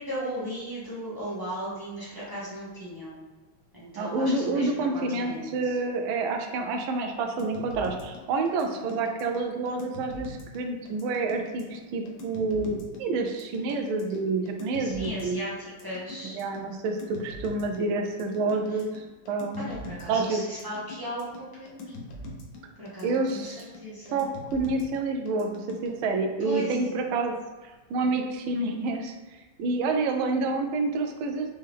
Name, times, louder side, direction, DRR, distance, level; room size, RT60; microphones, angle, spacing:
voice 1, 0.0-3.2 3.7-5.7 14.8-15.5 15.8-16.4 19.5-22.0 22.8-23.5 23.8-24.2 26.4-26.8, equal, 30° right, -9 dB, 0.4 m, -36 dB
voice 2, 4.0-15.4 16.2-19.7 20.1-20.5 23.0-23.7 24.1-27.3 27.6-31.5, right 3 dB, 80° right, 4 dB, 1.4 m, -28 dB
sound 1, 7.4-25.9, left 2 dB, 65° left, 1.3 m, -43 dB
4.5 x 3.3 x 3.4 m, 1.2 s
omnidirectional pair, 2.3 m